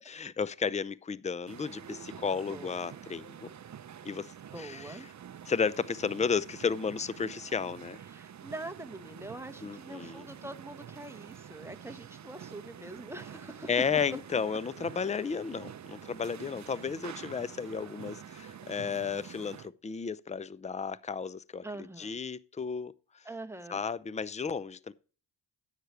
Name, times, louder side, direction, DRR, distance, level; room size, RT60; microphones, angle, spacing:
voice 1, 0.1-3.5 4.0-5.0 5.5-8.0 9.6-10.2 13.7-21.6 22.0-22.9 23.7-24.9, left 6 dB, 15° left, 0.5 m, -33 dB
sound 1, 1.5-19.7, right 9 dB, 40° right, 0.7 m, -48 dB
voice 2, 2.5-3.0 4.5-5.1 8.1-13.7 21.6-22.2 23.2-23.8, right 2 dB, 5° right, 1.3 m, -44 dB
9.9 x 8.3 x 4.4 m
supercardioid pair, 55°, 46 cm